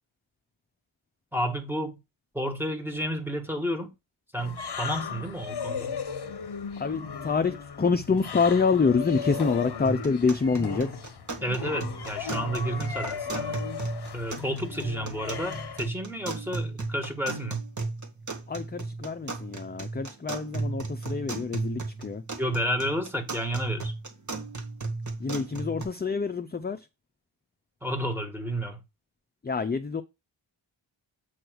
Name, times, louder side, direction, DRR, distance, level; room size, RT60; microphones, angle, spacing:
voice 1, 1.3-2.0 2.3-3.9 4.3-5.9 11.4-13.6 14.1-17.6 22.4-23.9 27.8-28.8, equal, 5° right, 1.6 m, -31 dB
sound 1, 4.4-15.9, left 6 dB, 55° left, 0.9 m, -36 dB
voice 2, 6.8-10.9 18.5-22.2 25.2-26.9 29.4-30.0, left 5 dB, 20° left, 0.4 m, -26 dB
sound 2, 9.8-25.8, right 3 dB, 35° right, 1.4 m, -35 dB
7.8 x 3.2 x 6.2 m
wide cardioid pair, 90°, 48 cm